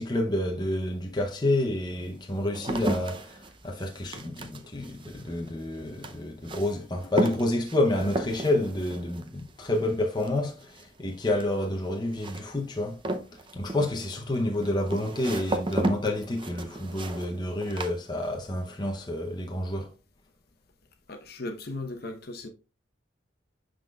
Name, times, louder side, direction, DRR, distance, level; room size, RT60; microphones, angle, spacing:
voice 1, 0.0-13.0 13.3-19.9, left 1 dB, 20° left, 0.6 m, -29 dB
sound 1, 0.7-0.8 1.5-18.7 18.9-19.5, right 1 dB, 25° right, 0.5 m, -35 dB
voice 2, 21.1-22.5, left 2 dB, 50° left, 0.8 m, -37 dB
11.0 x 3.8 x 2.3 m
head